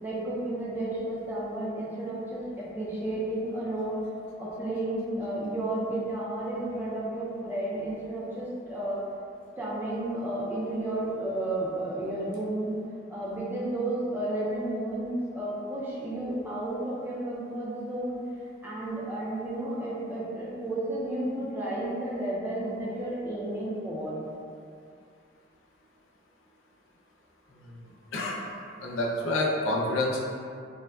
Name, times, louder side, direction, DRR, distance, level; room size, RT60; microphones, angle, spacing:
voice 1, 0.0-4.0 4.4-9.0 9.6-12.8 13.1-18.2 18.6-24.2, right 1 dB, 10° right, -7 dB, 0.4 m, -32 dB
voice 2, 28.8-30.2, left 2 dB, 80° left, -3 dB, 0.5 m, -28 dB
3.6 x 2.1 x 2.3 m, 2.4 s
head